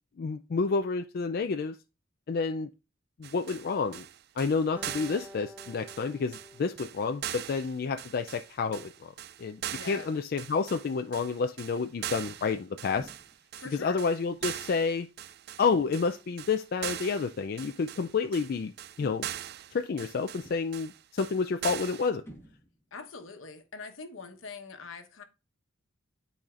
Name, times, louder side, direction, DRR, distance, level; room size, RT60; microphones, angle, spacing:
voice 1, 0.2-1.8 2.3-2.7 3.2-4.0 4.4-9.1 9.4-9.6 9.9-13.1 13.7-15.1 15.6-18.7 19.0-19.3 19.7-22.2, left 5 dB, 50° left, 0.4 m, -29 dB
sound 1, 3.2-22.1, right 12 dB, 50° right, 0.3 m, -41 dB
Acoustic guitar, 4.8-8.1, left 1 dB, 10° right, 0.6 m, -50 dB
voice 2, 9.7-10.1 13.6-14.0 22.9-25.2, left 4 dB, 75° left, 1.1 m, -43 dB
sound 2, 12.9-13.4 14.3-14.6 15.7-16.2 17.3-17.5 19.0-19.5 20.3-20.8 22.2-22.9, equal, 10° left, 1.4 m, -52 dB
12.0 x 4.2 x 2.4 m
head